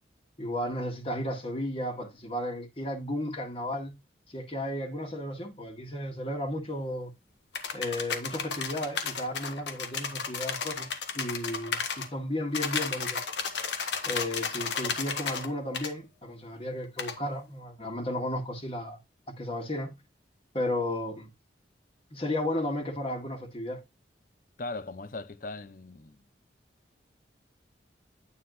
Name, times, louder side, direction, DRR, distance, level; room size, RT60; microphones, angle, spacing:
voice 1, 0.4-3.9 4.3-7.1 7.7-10.9 11.1-11.8 12.1-13.2 14.1-19.0 19.4-20.0 20.5-21.3 22.1-23.8, left 1 dB, 30° left, 1.8 m, -33 dB
sound 1, 7.5-12.1 12.5-15.5 15.7-15.9 17.0-17.2, left 5 dB, 75° left, 1.5 m, -33 dB
voice 2, 24.6-26.2, left 2 dB, 45° left, 0.7 m, -39 dB
9.5 x 4.0 x 4.0 m
head